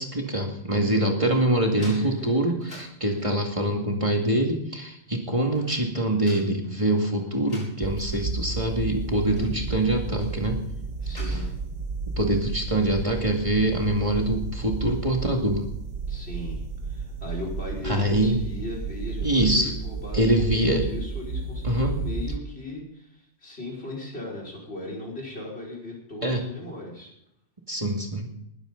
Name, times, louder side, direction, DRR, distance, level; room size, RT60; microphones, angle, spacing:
voice 1, 0.0-10.6 11.3-11.4 12.2-15.7 17.8-18.4 19.2-19.7 20.1-20.9 21.6-22.0 26.2-26.4 27.7-28.3, right 1 dB, 25° right, 1 dB, 2.3 m, -24 dB
sound 1, 1.7-3.6 5.4-8.4 8.6-8.7 9.2-9.8 10.2-10.4 10.7-11.7, left 1 dB, 80° left, 5.7 m, -45 dB
voice 2, 1.8-2.5 9.2-9.6 11.0-11.5 16.1-27.1, left 2 dB, 60° left, -1 dB, 5.6 m, -37 dB
sound 2, 7.8-22.4, right 4 dB, 45° right, 0.8 m, -32 dB
19.5 x 14.0 x 4.0 m, 0.75 s
omnidirectional pair, 1.2 m